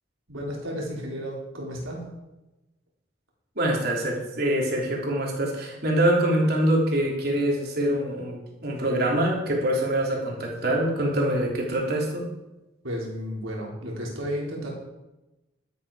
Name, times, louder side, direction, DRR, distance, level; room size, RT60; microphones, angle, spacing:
voice 1, 0.3-2.1 12.8-14.7, equal, 80° right, -3 dB, 4.3 m, -33 dB
voice 2, 3.5-12.3, right 1 dB, 50° right, -1 dB, 3.4 m, -24 dB
12.0 x 11.5 x 5.0 m, 1.0 s
head